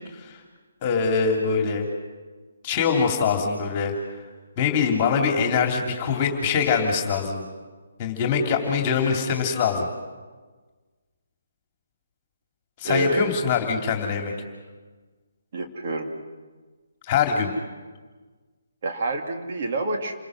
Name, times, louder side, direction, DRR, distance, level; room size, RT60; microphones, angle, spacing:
voice 1, 0.8-1.9 2.6-3.9 4.6-7.4 8.0-9.9 12.8-14.3 17.1-17.5, left 6 dB, 30° left, 2 dB, 3.0 m, -23 dB
voice 2, 12.8-13.3 15.5-16.1 18.8-20.1, right 2 dB, 45° right, 2 dB, 2.9 m, -27 dB
29.0 x 21.0 x 6.3 m, 1.4 s
figure-of-eight pair, 145°, 0 cm